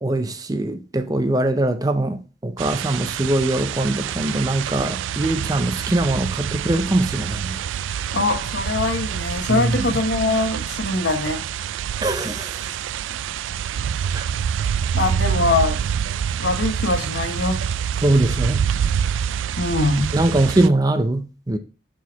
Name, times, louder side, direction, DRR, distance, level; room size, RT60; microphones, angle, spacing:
voice 1, 0.0-7.6 9.5-10.0 12.0-12.7 14.1-14.3 18.0-18.6 20.1-21.6, right 1 dB, 20° right, 0.5 m, -22 dB
sound 1, 2.6-20.7, right 8 dB, 85° right, 0.3 m, -26 dB
voice 2, 8.1-11.4 14.9-15.8 16.4-17.6 19.6-20.1, left 2 dB, 70° left, 1.2 m, -22 dB
6.2 x 4.6 x 3.5 m
head